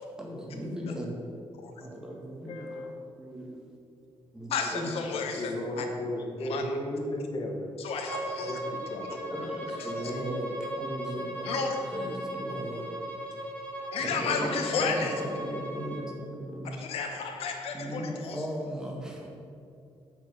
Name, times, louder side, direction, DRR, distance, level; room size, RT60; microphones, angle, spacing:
voice 1, 0.2-1.1 1.8-2.9 3.2-3.6 4.3-5.3 5.7-5.9 6.5-7.0 9.3-11.7 11.9-12.9 14.0-16.8 17.7-19.3, equal, 5° right, -1 dB, 1.6 m, -37 dB
voice 2, 2.5-2.9 4.5-5.9 6.4-6.7 7.8-8.6 9.7-10.1 11.4-11.8 13.9-15.2 16.8-18.4, left 5 dB, 75° left, 3 dB, 0.8 m, -32 dB
voice 3, 5.4-7.7 8.4-9.5 9.9-10.6, left 1 dB, 45° left, 1 dB, 1.3 m, -35 dB
Bowed string instrument, 8.0-16.1, right 1 dB, 15° left, 1.5 m, -37 dB
8.2 x 4.9 x 6.8 m, 2.5 s
cardioid pair, 120°, 10 cm